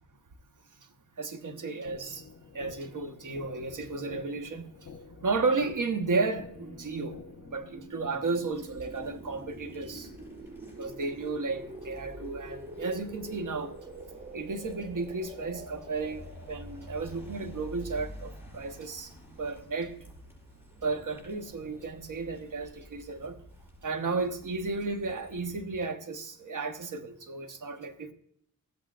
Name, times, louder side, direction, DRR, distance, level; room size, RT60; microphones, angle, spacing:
voice 1, 1.2-2.2 2.5-4.7 5.2-7.2 7.5-10.1 10.8-13.7 14.3-19.1 19.4-19.9 20.8-23.4 23.8-28.1, right 3 dB, 55° right, 1.3 m, -33 dB
sound 1, 1.8-7.8, left 5 dB, 55° left, 1.0 m, -49 dB
sound 2, 6.5-18.0 20.7-22.1, right 1 dB, 20° right, 1.5 m, -47 dB
sound 3, 8.5-25.6, equal, 5° right, 4.8 m, -50 dB
15.5 x 8.4 x 2.5 m
cardioid pair, 75°, 37 cm